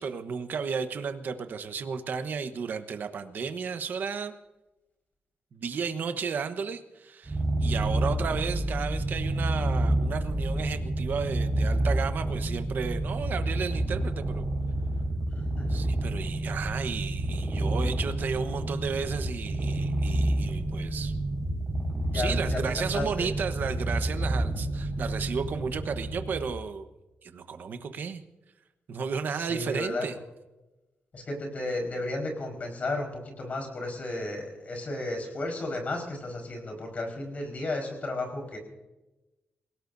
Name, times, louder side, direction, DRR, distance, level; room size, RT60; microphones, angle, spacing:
voice 1, 0.0-4.3 5.5-14.5 15.7-21.1 22.1-26.9 27.2-28.2 28.9-30.2, right 6 dB, 60° right, 9 dB, 1.1 m, -33 dB
Purr, 7.2-26.6, right 1 dB, 20° right, 5.1 m, -29 dB
voice 2, 15.5-15.9 22.0-23.3 29.3-30.1 31.1-38.6, left 2 dB, 40° left, 2 dB, 4.8 m, -33 dB
27.5 x 17.5 x 2.7 m, 1.0 s
wide cardioid pair, 140°, 4 cm